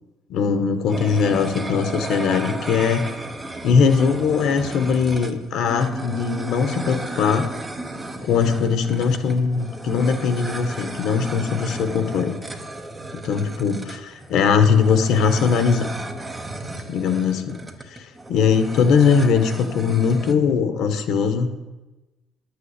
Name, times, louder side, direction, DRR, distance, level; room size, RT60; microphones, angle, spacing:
voice 1, 0.3-3.0 3.6-7.5 8.2-12.3 13.2-15.9 16.9-17.6 17.9-21.5, left 6 dB, 55° left, 9 dB, 1.4 m, -20 dB
sound 1, 0.9-20.3, right 2 dB, 10° right, 1.0 m, -34 dB
11.0 x 8.4 x 8.3 m, 1.1 s
cardioid pair, 175°, 0 cm